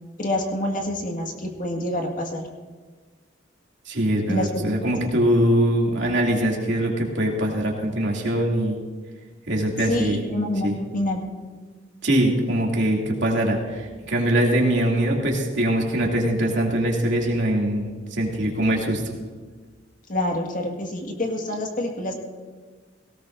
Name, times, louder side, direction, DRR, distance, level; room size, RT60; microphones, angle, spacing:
voice 1, 0.2-2.4 4.3-4.7 9.9-11.2 20.1-22.1, left 1 dB, 45° left, 2 dB, 1.9 m, -27 dB
voice 2, 3.9-8.8 9.5-10.2 10.6-10.7 12.0-19.2, right 1 dB, 70° right, -2 dB, 2.7 m, -22 dB
18.0 x 17.5 x 2.7 m, 1.4 s
head